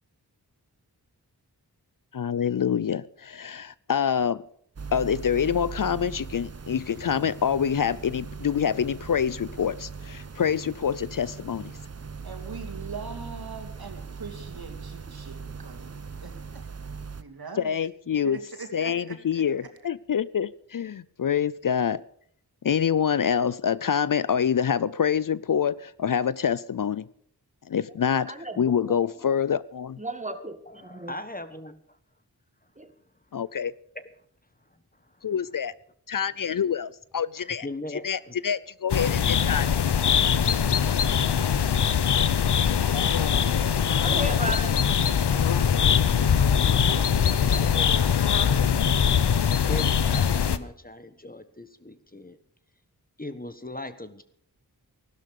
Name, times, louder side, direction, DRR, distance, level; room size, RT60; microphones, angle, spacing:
voice 1, 2.1-4.4 4.9-11.7 17.6-18.4 18.7-22.0 22.6-27.0 27.7-30.0 33.3-33.7 35.2-35.7 36.1-37.7 38.0-39.1 39.5-39.8, left 8 dB, 55° left, 20 dB, 0.5 m, -26 dB
sound 1, 4.8-17.2, right 5 dB, 40° right, 0.9 m, -40 dB
voice 2, 12.2-16.6 17.2-17.8 18.2-19.4, right 4 dB, 65° right, 5 dB, 2.8 m, -41 dB
voice 3, 28.3-28.9 29.2-29.3 30.0-31.2 32.8-32.9 44.0-44.8, right 1 dB, 20° right, 8 dB, 2.0 m, -34 dB
voice 4, 30.7-32.0 33.9-34.0 37.3-38.3 46.7-48.4 49.7-52.4 53.2-54.2, left 2 dB, 20° left, 11 dB, 1.3 m, -39 dB
sound 2, 38.9-50.6, left 7 dB, 85° left, 0.8 m, -22 dB
16.0 x 12.0 x 6.6 m, 0.65 s
wide cardioid pair, 50°, 39 cm